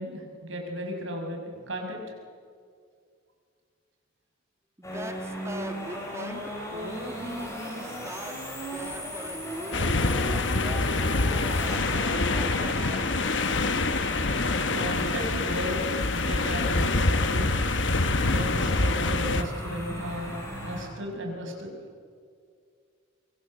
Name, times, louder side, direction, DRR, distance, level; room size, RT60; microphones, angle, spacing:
voice 1, 0.0-2.0 6.9-7.0 14.7-15.8 16.1-17.7 18.2-21.8, equal, 75° right, 2 dB, 5.7 m, -35 dB
sound 1, 4.8-20.8, equal, 15° left, 6.9 m, -37 dB
voice 2, 4.8-11.9 12.3-13.3, right 1 dB, 15° right, 5 dB, 2.1 m, -41 dB
sound 2, 9.7-19.4, left 3 dB, 65° left, 1.2 m, -26 dB
24.5 x 24.0 x 7.7 m, 2.2 s
head